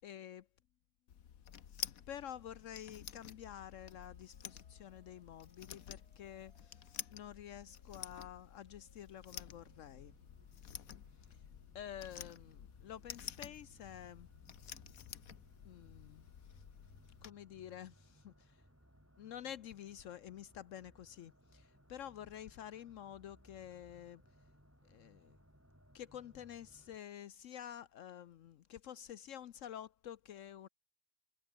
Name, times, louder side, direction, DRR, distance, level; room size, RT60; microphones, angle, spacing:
voice 1, 0.0-0.4 2.1-6.8 7.1-10.1 11.7-14.3 15.6-16.2 17.2-18.6 19.2-24.2 24.8-25.4 25.9-30.7, left 10 dB, 70° left, 1.0 m, -49 dB
sound 1, 1.1-17.3, left 9 dB, 90° left, 1.6 m, -51 dB
sound 2, 3.7-11.4, right 3 dB, 45° right, 3.2 m, -76 dB
sound 3, 9.3-27.0, equal, 10° right, 6.2 m, -65 dB
omnidirectional pair, 1.4 m